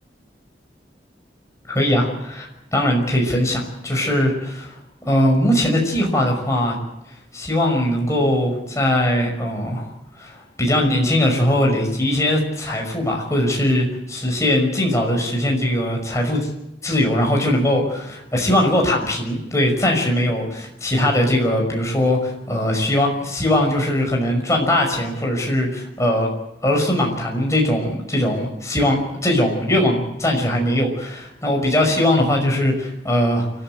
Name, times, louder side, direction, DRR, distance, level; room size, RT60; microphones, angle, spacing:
voice 1, 1.7-4.8 5.0-6.8 7.3-9.9 10.2-16.5 16.8-26.3 26.6-33.5, left 1 dB, 15° left, 0 dB, 5.7 m, -20 dB
29.0 x 13.0 x 7.8 m, 0.89 s
head